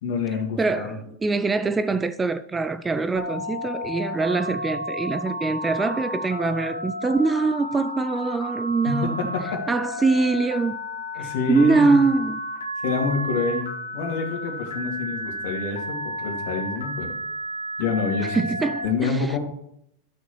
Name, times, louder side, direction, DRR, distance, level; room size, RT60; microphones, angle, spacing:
voice 1, 0.0-1.0 8.9-9.4 11.2-11.9 12.8-17.1 17.8-18.4 18.8-19.4, left 4 dB, 60° left, 2.3 m, -27 dB
voice 2, 0.6-9.1 9.7-10.8 11.2-12.4 18.2-19.4, right 3 dB, 15° right, 0.4 m, -23 dB
Telephone, 3.2-18.9, left 1 dB, 75° left, 1.7 m, -32 dB
12.5 x 6.4 x 3.1 m
figure-of-eight pair, 90°, 0 cm